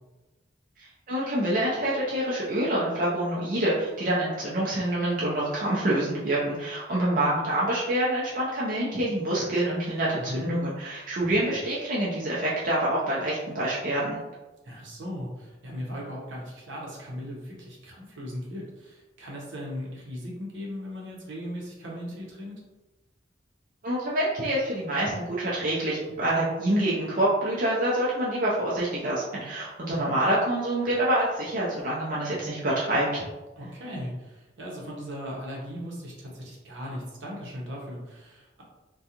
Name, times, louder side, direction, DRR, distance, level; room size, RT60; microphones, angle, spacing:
voice 1, 1.1-14.2 23.8-33.3, right 1 dB, 45° right, -6 dB, 0.5 m, -26 dB
voice 2, 10.1-10.5 14.6-22.5 29.9-30.1 33.6-38.6, equal, 70° right, -3 dB, 0.8 m, -38 dB
2.4 x 2.2 x 2.8 m, 1.1 s
head